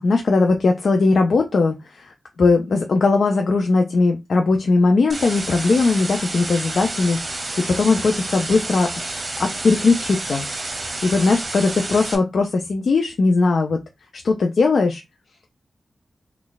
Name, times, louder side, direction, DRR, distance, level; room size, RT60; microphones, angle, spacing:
voice 1, 0.0-8.9 9.4-10.5 10.7-13.8 14.2-15.0, left 3 dB, 80° left, 3 dB, 0.4 m, -19 dB
sound 1, 5.1-12.1, right 2 dB, 45° right, 0.8 m, -30 dB
3.0 x 2.3 x 3.9 m, 0.22 s
cardioid pair, 60°, 0 cm